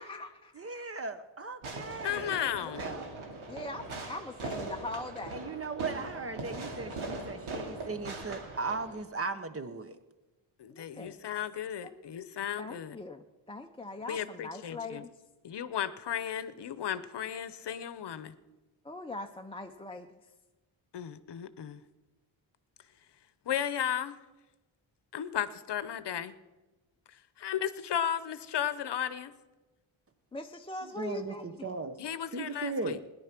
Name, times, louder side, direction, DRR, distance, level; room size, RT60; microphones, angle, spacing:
voice 1, 0.6-2.4 2.8-3.2 3.5-3.7 5.3-10.0 31.0-32.0 32.3-33.1, right 3 dB, 30° right, 12 dB, 0.8 m, -38 dB
Fireworks, 1.6-9.0, right 2 dB, 85° right, 2.4 m, -40 dB
voice 2, 2.0-2.9 10.6-13.0 14.1-15.0 15.4-18.3 20.9-21.8 23.5-24.2 25.1-26.3 27.4-29.3 32.0-33.1, left 9 dB, 60° left, 14 dB, 0.8 m, -34 dB
voice 3, 2.6-3.0 3.5-5.4 10.7-11.2 11.8-11.9 12.6-15.1 18.8-20.2 30.3-31.7, left 2 dB, 10° left, 3 dB, 0.5 m, -41 dB
17.5 x 10.5 x 5.9 m, 1.1 s
wide cardioid pair, 130°, 48 cm